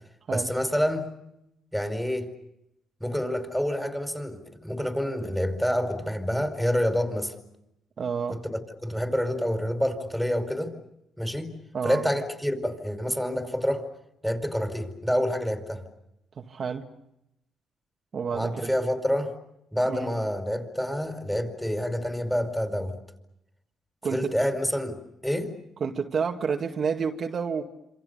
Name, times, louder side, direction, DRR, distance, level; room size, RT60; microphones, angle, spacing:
voice 1, 0.3-1.1 1.7-2.3 3.0-7.3 8.3-10.8 11.2-11.6 11.8-13.8 14.2-15.8 18.3-19.3 19.7-23.0 24.1-25.5, equal, ahead, 5.0 m, -28 dB
voice 2, 8.0-8.4 11.7-12.1 16.4-16.9 18.1-18.7 19.8-20.1 24.0-24.3 25.8-27.6, right 6 dB, 50° right, 2.2 m, -29 dB
27.5 x 27.0 x 6.9 m
cardioid pair, 90°, 0 cm